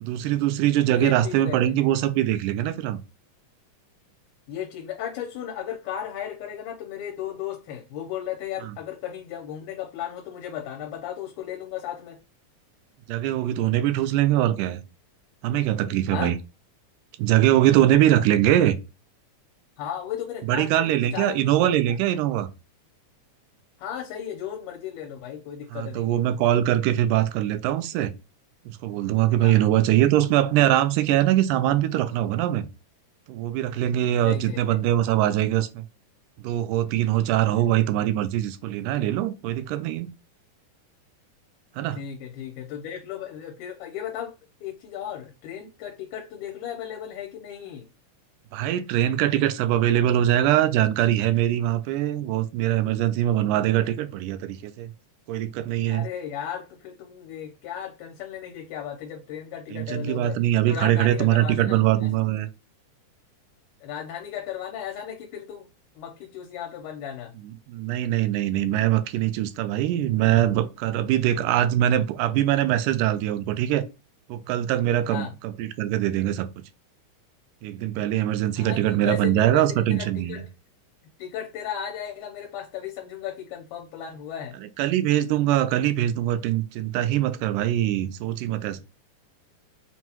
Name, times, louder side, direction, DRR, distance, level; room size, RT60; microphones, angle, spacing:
voice 1, 0.0-3.0 8.6-8.8 13.1-14.8 15.4-16.4 17.2-18.8 20.4-22.5 25.7-28.1 28.7-32.7 33.3-35.8 36.4-40.1 41.8-42.0 48.5-54.9 55.3-56.1 59.7-62.5 67.4-73.8 74.3-76.5 77.6-80.4 84.6-88.8, right 12 dB, 85° right, 2.0 m, -22 dB
voice 2, 0.9-1.9 4.5-12.2 16.1-16.3 19.8-22.0 23.8-26.2 29.4-29.6 34.2-34.8 37.6-37.7 42.0-44.3 44.6-47.9 55.8-60.4 60.7-62.1 63.8-65.7 65.9-67.3 75.1-75.3 78.6-80.5 81.2-84.6, left 9 dB, 80° left, 2.2 m, -35 dB
5.9 x 2.2 x 2.8 m
omnidirectional pair, 3.7 m